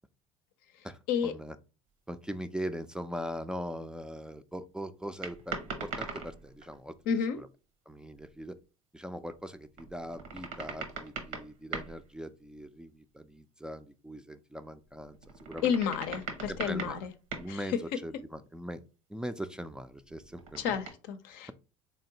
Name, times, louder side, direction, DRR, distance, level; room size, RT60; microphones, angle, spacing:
voice 1, 0.8-1.6 2.1-7.5 7.9-8.6 8.9-15.7 16.5-17.0 17.4-18.8 19.1-20.8, equal, 5° right, 0.3 m, -41 dB
sound 1, 5.2-6.8 8.2-8.3 9.8-12.1 14.9-17.6 20.1-20.9, right 4 dB, 80° right, 0.9 m, -41 dB
voice 2, 7.1-7.4 15.6-17.1 17.5-17.6 20.6-21.5, left 7 dB, 65° left, 0.5 m, -31 dB
3.7 x 3.2 x 2.8 m
hypercardioid pair, 70°, 17 cm